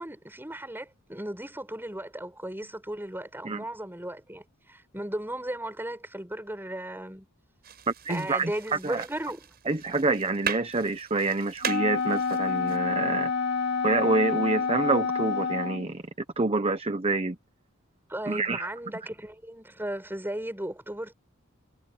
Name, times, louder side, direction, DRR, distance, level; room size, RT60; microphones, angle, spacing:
voice 1, 0.0-7.3 8.1-9.5 18.1-21.1, right 1 dB, 10° right, 7.8 m, -36 dB
sound 1, 7.6-12.8, right 8 dB, 50° right, 6.4 m, -39 dB
voice 2, 8.0-8.5 8.8-9.0 9.7-13.3 13.8-16.0 16.4-17.4 18.3-18.7, right 3 dB, 30° right, 0.9 m, -27 dB
Wind instrument woodwind instrument, 11.6-15.9, left 5 dB, 55° left, 1.9 m, -28 dB
head